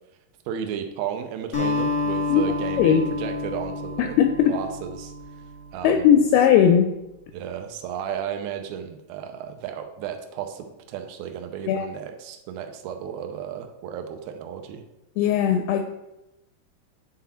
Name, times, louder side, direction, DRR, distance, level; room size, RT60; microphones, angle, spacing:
voice 1, 0.5-4.2 4.5-5.1 5.7-6.1 7.3-14.8, right 8 dB, 80° right, 5 dB, 2.3 m, -34 dB
Acoustic guitar, 1.5-6.0, left 3 dB, 45° left, 1.1 m, -29 dB
voice 2, 2.8-3.1 4.0-4.6 5.8-6.9 11.7-11.9 15.2-15.9, left 9 dB, 85° left, 6 dB, 2.2 m, -18 dB
10.5 x 3.9 x 4.3 m, 0.93 s
omnidirectional pair, 4.8 m